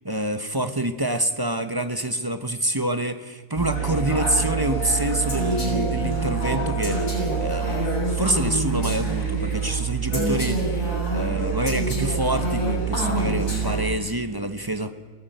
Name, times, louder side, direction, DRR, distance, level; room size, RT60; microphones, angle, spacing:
voice 1, 0.0-7.1 7.4-15.0, right 1 dB, 15° right, 9 dB, 1.0 m, -27 dB
sound 1, 3.5-13.9, right 7 dB, 60° left, 6.4 m, -27 dB
Brass instrument, 3.7-7.8, equal, 20° left, 7.2 m, -35 dB
Female speech woman speaking, 5.3-9.5 10.1-14.1, left 1 dB, 85° left, 7.3 m, -29 dB
22.5 x 17.0 x 9.3 m, 1.3 s
omnidirectional pair, 1.6 m